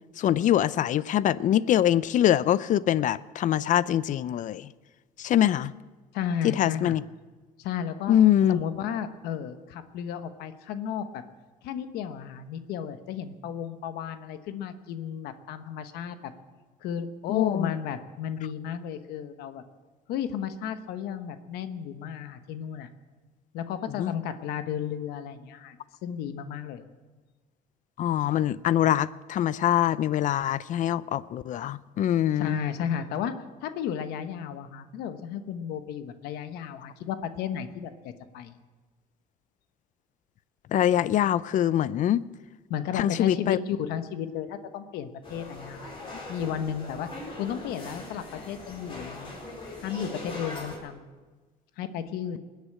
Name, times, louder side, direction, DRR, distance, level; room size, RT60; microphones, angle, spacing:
voice 1, 0.2-4.7 5.2-5.7 6.6-7.0 8.1-8.6 17.3-17.7 24.0-24.1 28.0-32.6 40.7-42.3 43.0-43.6, left 11 dB, 55° left, 0.5 m, -24 dB
voice 2, 6.1-7.0 7.6-8.2 8.5-11.2 11.6-16.3 16.8-19.6 20.1-22.9 23.5-25.8 26.0-26.8 32.4-38.6 42.7-45.9 46.3-47.1 47.4-49.3 49.8-51.1 51.8-52.4, left 8 dB, 90° left, 1.1 m, -33 dB
sound 1, 45.2-50.8, left 2 dB, 35° left, 5.0 m, -40 dB
20.5 x 8.2 x 8.6 m
cardioid pair, 115°, 16 cm